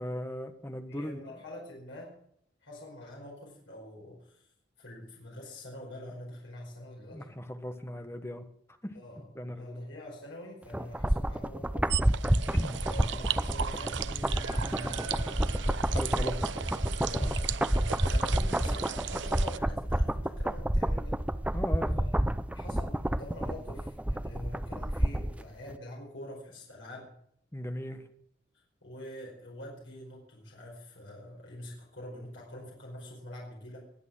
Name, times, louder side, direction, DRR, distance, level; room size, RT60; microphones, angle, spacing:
voice 1, 0.0-1.3 7.1-8.4 8.8-9.0 9.3-9.8 12.5-12.8 15.9-16.4 17.2-17.3 21.5-22.0 27.5-28.0, left 1 dB, 15° left, 7 dB, 1.3 m, -37 dB
voice 2, 0.9-2.1 2.6-4.5 4.8-7.4 8.9-9.3 9.5-11.9 12.8-16.4 17.1-17.7 18.1-21.2 21.9-22.2 22.5-27.1 28.8-33.9, left 1 dB, 80° left, -2 dB, 4.9 m, -45 dB
sound 1, 10.7-25.4 25.7-25.8, right 1 dB, 5° right, 0.5 m, -29 dB
sound 2, 11.9-19.6, right 9 dB, 70° right, 0.6 m, -37 dB
Screaming, 14.3-19.1, right 5 dB, 25° right, 6.0 m, -52 dB
21.5 x 8.4 x 6.3 m, 0.69 s
head